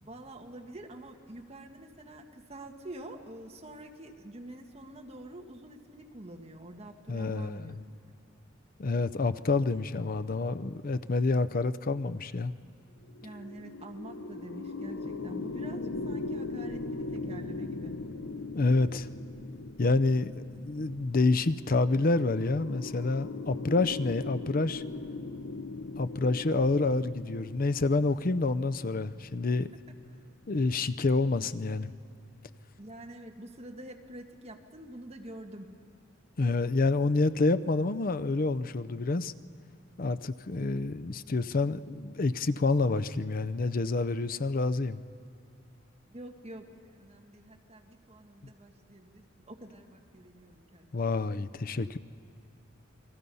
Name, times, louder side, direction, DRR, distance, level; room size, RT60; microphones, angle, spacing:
voice 1, 0.0-8.2 13.2-17.9 29.9-30.0 31.4-31.5 32.8-35.8 46.1-51.1, right 1 dB, 30° right, 2 dB, 1.7 m, -47 dB
voice 2, 7.1-7.8 8.8-12.5 18.6-19.1 19.8-24.8 26.0-29.7 30.5-31.9 36.4-39.3 40.0-45.0 50.9-52.0, left 3 dB, 45° left, 12 dB, 0.6 m, -28 dB
sound 1, 13.0-30.5, left 3 dB, 85° left, 0.9 m, -40 dB
28.5 x 20.0 x 5.5 m, 2.5 s
head